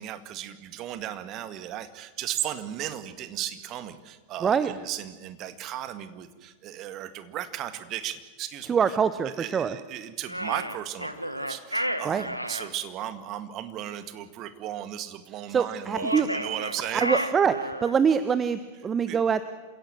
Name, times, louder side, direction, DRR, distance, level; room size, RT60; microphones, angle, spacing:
voice 1, 0.0-9.0 9.2-17.3 19.1-19.2, right 11 dB, 35° right, 11 dB, 1.8 m, -36 dB
voice 2, 4.4-4.7 8.7-9.8 12.0-12.3 15.5-16.3 16.9-19.4, right 7 dB, 20° right, 13 dB, 0.8 m, -24 dB
sound 1, 10.3-12.7 15.9-18.0, equal, 90° right, 1.3 m, -32 dB
27.5 x 16.5 x 7.7 m, 1.3 s
figure-of-eight pair, 90°, 0 cm